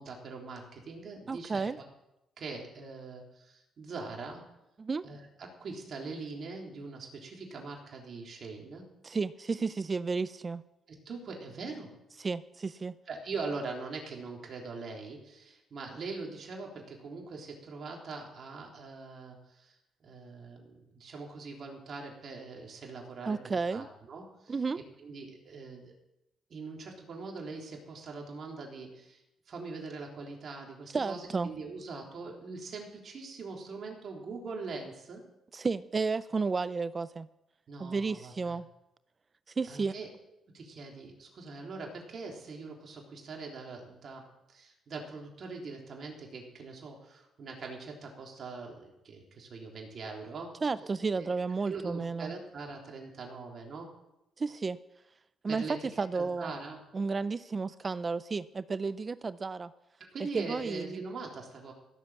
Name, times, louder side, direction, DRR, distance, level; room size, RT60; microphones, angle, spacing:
voice 1, 0.0-1.8 2.4-4.4 5.0-8.9 10.9-11.9 13.1-19.8 20.0-24.6 25.0-25.9 26.5-35.2 37.7-38.6 39.7-40.1 40.5-50.5 51.1-51.3 51.7-53.9 55.5-55.9 56.1-56.8 60.0-61.7, right 4 dB, 55° right, 0 dB, 3.6 m, -42 dB
voice 2, 1.3-1.8 4.8-5.0 9.0-10.6 12.2-12.9 23.3-23.9 24.5-24.8 30.9-31.5 35.5-37.3 37.8-38.7 39.6-39.9 50.6-52.3 54.4-54.8 55.4-55.6 56.0-56.5 56.9-59.7 60.3-61.0, right 4 dB, 35° right, 16 dB, 0.4 m, -32 dB
16.0 x 7.6 x 7.3 m, 0.90 s
cardioid pair, 90°, 0 cm